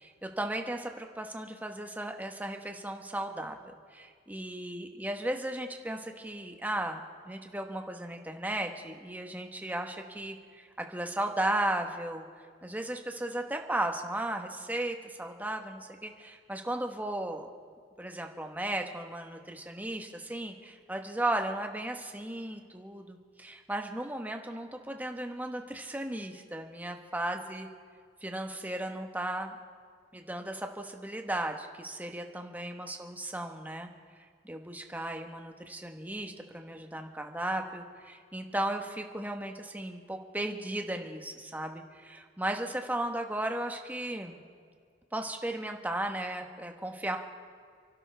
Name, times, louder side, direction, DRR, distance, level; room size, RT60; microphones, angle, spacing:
voice 1, 0.0-12.2 12.6-17.5 18.0-27.7 28.2-29.6 30.1-33.9 34.4-44.4 45.1-47.2, right 1 dB, 10° right, 3 dB, 1.2 m, -35 dB
29.0 x 12.0 x 3.4 m, 2.1 s
head